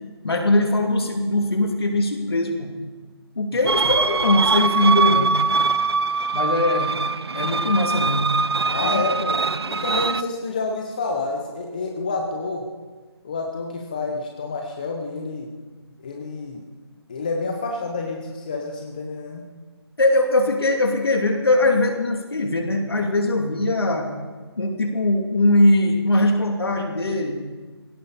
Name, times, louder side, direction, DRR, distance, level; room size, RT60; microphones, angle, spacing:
voice 1, 0.2-2.7 3.4-5.3 6.3-6.9 7.3-8.3 8.8-9.0 20.0-24.1 24.6-27.3, left 2 dB, 65° left, 3 dB, 2.9 m, -21 dB
sound 1, 3.7-10.2, right 4 dB, 70° right, 0.7 m, -22 dB
voice 2, 8.7-9.4 9.7-12.6 13.2-15.5 16.0-16.6 17.1-19.5, left 3 dB, 20° left, 1 dB, 0.8 m, -28 dB
18.5 x 17.0 x 4.2 m, 1.4 s
figure-of-eight pair, 170°, 14 cm